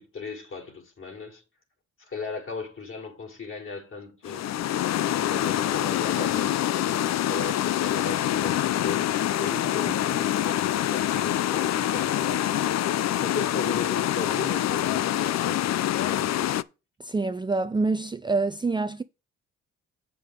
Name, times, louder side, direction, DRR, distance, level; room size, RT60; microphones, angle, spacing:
voice 1, 0.0-1.4 2.0-4.5 5.1-12.8 13.2-15.6 16.0-16.5, left 4 dB, 45° left, 4.1 m, -37 dB
sound 1, 4.2-16.6, left 12 dB, 60° left, 0.6 m, -25 dB
voice 2, 17.0-19.0, right 3 dB, 15° right, 0.6 m, -26 dB
8.5 x 6.7 x 5.1 m
cardioid pair, 90°, 30 cm